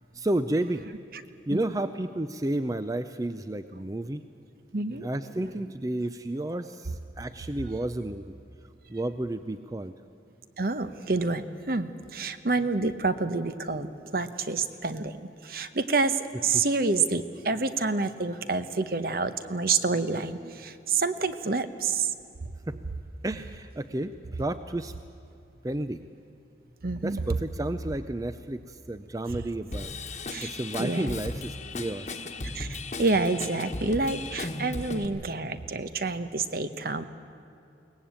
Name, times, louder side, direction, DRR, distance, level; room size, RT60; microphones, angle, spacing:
voice 1, 0.1-0.9 1.5-4.2 5.0-8.4 8.9-9.9 16.5-16.6 22.7-22.8 23.2-24.9 25.6-26.0 27.0-32.2, right 1 dB, 20° right, 11 dB, 0.4 m, -32 dB
voice 2, 4.7-5.1 5.4-5.5 10.6-22.1 26.8-27.2 29.3-29.4 30.3-30.5 30.8-31.1 32.5-37.1, right 3 dB, 50° right, 11 dB, 0.9 m, -28 dB
Drum kit / Drum, 29.7-35.0, left 2 dB, 40° left, 1.3 m, -36 dB
23.0 x 18.5 x 8.8 m, 2.6 s
head